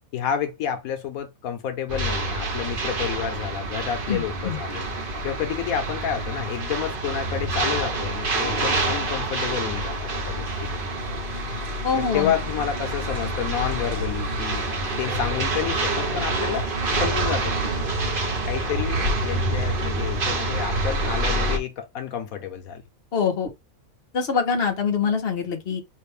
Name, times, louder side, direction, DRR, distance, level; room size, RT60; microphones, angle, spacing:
voice 1, 0.1-4.9 5.2-10.8 12.0-14.6 15.0-16.7 17.0-17.7 18.4-22.8, left 9 dB, 90° left, 1.3 m, -30 dB
sound 1, 1.9-21.6, right 2 dB, 40° right, 1.1 m, -27 dB
voice 2, 4.1-4.6 11.8-12.3 23.1-23.5 24.1-25.8, left 6 dB, 50° left, 1.3 m, -24 dB
5.5 x 2.5 x 3.4 m
omnidirectional pair, 1.5 m